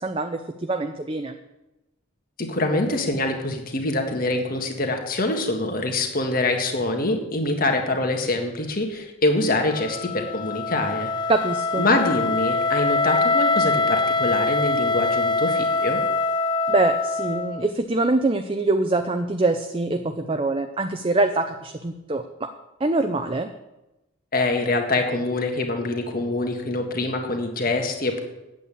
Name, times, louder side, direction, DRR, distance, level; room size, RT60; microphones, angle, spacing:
voice 1, 0.0-1.4 11.3-11.9 16.7-22.5 22.8-23.5, right 2 dB, 25° right, 7 dB, 0.5 m, -24 dB
voice 2, 2.4-11.1 11.8-16.0 24.3-28.2, left 2 dB, 45° left, 4 dB, 1.7 m, -24 dB
Wind instrument woodwind instrument, 9.7-17.7, left 3 dB, 20° left, 0.4 m, -24 dB
8.9 x 8.3 x 8.4 m, 0.99 s
head